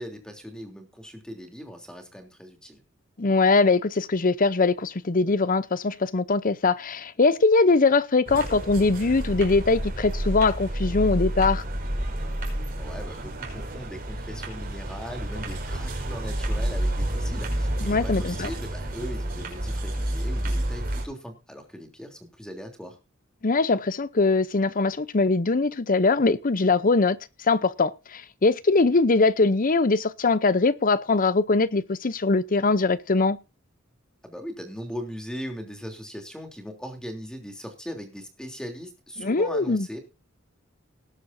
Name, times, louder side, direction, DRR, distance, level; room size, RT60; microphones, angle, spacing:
voice 1, 0.0-2.8 12.8-23.0 34.2-40.0, equal, 5° left, 3.3 m, -39 dB
voice 2, 3.2-11.6 17.8-18.5 23.4-27.2 27.5-33.4 39.2-39.9, left 3 dB, 45° left, 0.7 m, -22 dB
sound 1, 8.3-21.1, right 1 dB, 45° right, 5.3 m, -30 dB
19.5 x 11.0 x 2.7 m
head